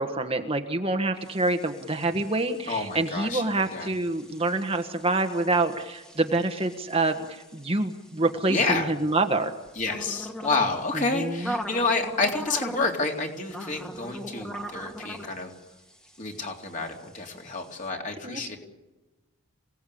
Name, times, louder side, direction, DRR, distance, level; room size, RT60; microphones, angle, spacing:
voice 1, 0.0-9.5 10.9-11.5 18.2-18.6, right 2 dB, 25° right, 6 dB, 1.4 m, -27 dB
sound 1, 1.2-17.9, equal, 5° left, 2.0 m, -41 dB
voice 2, 2.7-3.9 8.5-8.9 9.8-15.5 16.2-18.6, left 3 dB, 35° left, 1 dB, 3.5 m, -29 dB
28.0 x 18.0 x 8.6 m, 1.1 s
head